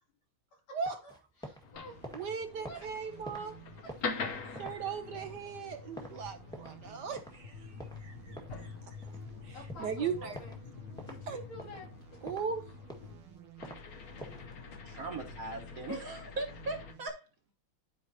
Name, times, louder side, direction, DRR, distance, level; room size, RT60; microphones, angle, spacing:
sound 1, 0.8-1.7 1.9-6.9 7.2-7.4 7.8-9.3 9.7-9.9 10.3-10.6 11.0-11.2 11.6-12.5 12.8-13.8 14.2-14.5, equal, ahead, 1.4 m, -47 dB
voice 1, 1.4-2.2 2.6-2.9 3.8-4.7 6.2-6.3 9.5-10.6 11.0-12.3 15.9-16.0, left 1 dB, 85° left, 3.5 m, -48 dB
sound 2, 1.6-16.9, left 4 dB, 55° left, 1.2 m, -45 dB
sound 3, 1.7-17.1, right 8 dB, 85° right, 2.3 m, -56 dB
voice 2, 2.1-3.5 4.6-7.6 8.0-8.7 9.4-10.4 11.3-11.4 12.2-12.6, right 6 dB, 65° right, 1.3 m, -38 dB
voice 3, 14.8-17.3, right 2 dB, 45° right, 1.6 m, -39 dB
12.5 x 4.6 x 2.8 m
omnidirectional pair, 2.3 m